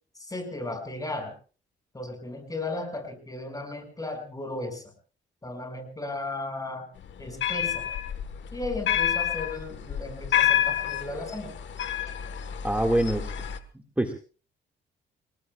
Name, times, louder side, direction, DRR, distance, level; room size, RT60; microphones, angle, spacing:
voice 1, 0.3-1.3 1.9-4.8 5.4-6.8 7.2-7.9 8.5-11.5, left 2 dB, 20° left, 5 dB, 6.3 m, -35 dB
sound 1, 7.0-13.6, left 10 dB, 70° left, 1.5 m, -29 dB
voice 2, 12.6-13.3 14.0-14.1, right 1 dB, 5° right, 3 dB, 2.0 m, -24 dB
29.5 x 18.5 x 2.4 m, 0.38 s
cardioid pair, 90°, 20 cm